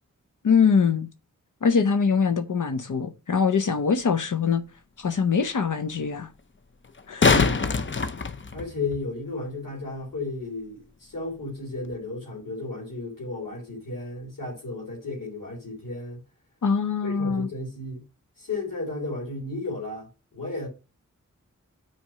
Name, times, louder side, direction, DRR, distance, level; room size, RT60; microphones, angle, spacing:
voice 1, 0.4-1.1 1.6-4.6 5.0-6.3 7.1-7.3 16.6-17.5, left 6 dB, 70° left, 0.7 m, -23 dB
sound 1, 4.0-4.1 6.8-9.0 11.9-12.0, left 4 dB, 40° left, 0.7 m, -23 dB
voice 2, 7.3-7.9 8.5-16.2 17.0-18.0 18.4-20.7, left 2 dB, 90° left, 3.1 m, -34 dB
5.9 x 4.4 x 5.6 m
wide cardioid pair, 55°, 31 cm